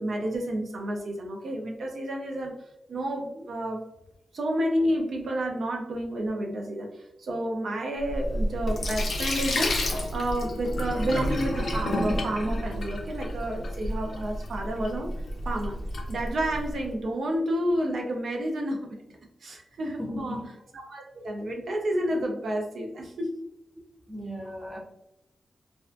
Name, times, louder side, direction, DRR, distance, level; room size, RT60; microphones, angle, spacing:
voice 1, 0.0-2.6 2.9-3.8 4.3-15.1 15.5-15.8 16.1-19.0 19.4-20.5 20.7-23.3, right 1 dB, 60° right, 1 dB, 0.4 m, -30 dB
Sink (filling or washing), 8.0-16.8, left 1 dB, 55° left, 0.5 m, -30 dB
voice 2, 20.0-20.4 24.1-24.8, equal, 10° right, -1 dB, 0.5 m, -36 dB
2.5 x 2.2 x 2.4 m, 0.83 s
wide cardioid pair, 150°, 0 cm